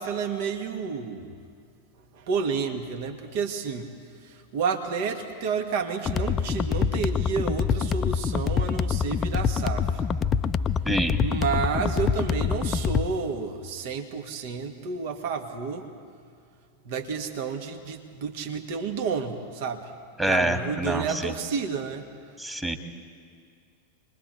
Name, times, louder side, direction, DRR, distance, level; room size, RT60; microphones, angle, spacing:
voice 1, 0.0-1.3 2.1-3.9 4.2-9.9 11.2-15.9 16.8-19.9 20.3-22.1, right 5 dB, 50° right, 6 dB, 1.7 m, -30 dB
sound 1, 6.1-13.1, left 6 dB, 25° left, 0.5 m, -26 dB
voice 2, 10.9-11.2 20.2-21.3 22.4-22.8, right 1 dB, 5° right, 3 dB, 2.0 m, -26 dB
27.5 x 22.0 x 4.5 m, 2.2 s
figure-of-eight pair, 90°, 0 cm